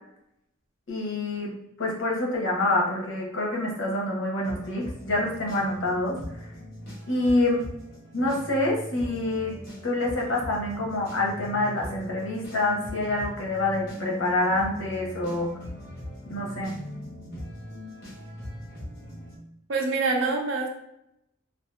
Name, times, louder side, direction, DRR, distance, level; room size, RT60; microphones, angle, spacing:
voice 1, 0.9-1.5 1.8-6.2 7.1-7.6 8.1-9.6 9.8-15.5 16.3-16.7, left 2 dB, 70° left, -1 dB, 0.8 m, -26 dB
sound 1, 4.4-19.4, left 1 dB, 50° left, 1.1 m, -40 dB
voice 2, 19.7-20.7, right 3 dB, 80° right, 2 dB, 0.6 m, -25 dB
2.6 x 2.3 x 2.3 m, 0.79 s
head